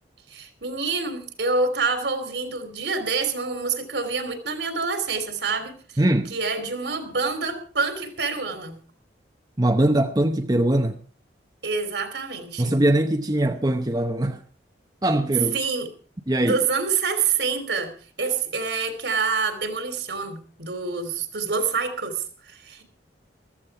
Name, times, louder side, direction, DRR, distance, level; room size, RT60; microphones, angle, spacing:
voice 1, 0.3-6.0 6.3-8.8 11.6-12.8 13.4-13.5 15.5-15.9 16.4-17.9 18.2-22.8, right 4 dB, 75° right, 3.1 m, -27 dB
voice 2, 6.0-6.3 9.6-11.0 12.6-14.4 15.0-15.6 16.3-16.6, right 1 dB, 20° right, 0.8 m, -21 dB
14.5 x 14.5 x 4.7 m
head